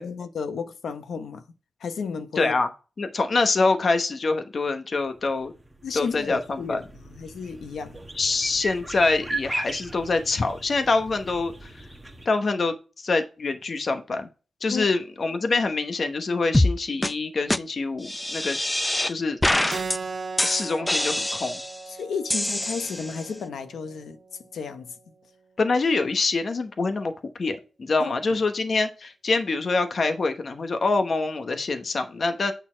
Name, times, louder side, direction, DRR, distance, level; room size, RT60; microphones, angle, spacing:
voice 1, 0.0-1.4 1.8-2.6 5.8-8.0 14.7-14.9 21.9-24.2 24.5-24.9 28.0-28.4, left 5 dB, 80° left, 1.0 m, -33 dB
voice 2, 2.4-2.7 3.0-5.5 5.9-6.8 8.1-11.9 12.2-14.3 14.6-18.6 19.1-19.8 20.4-21.6 25.6-32.5, left 3 dB, 45° left, 1.0 m, -25 dB
sound 1, 5.1-12.3, right 1 dB, 10° right, 1.2 m, -36 dB
sound 2, 16.5-16.7 17.0-17.1 17.5-17.6 18.0-19.1 19.4-20.0 20.4-21.8 22.3-23.2, left 1 dB, 10° left, 0.4 m, -24 dB
Keyboard (musical), 19.7-24.8, right 4 dB, 40° right, 0.7 m, -38 dB
8.7 x 4.0 x 4.5 m
wide cardioid pair, 140°, 0 cm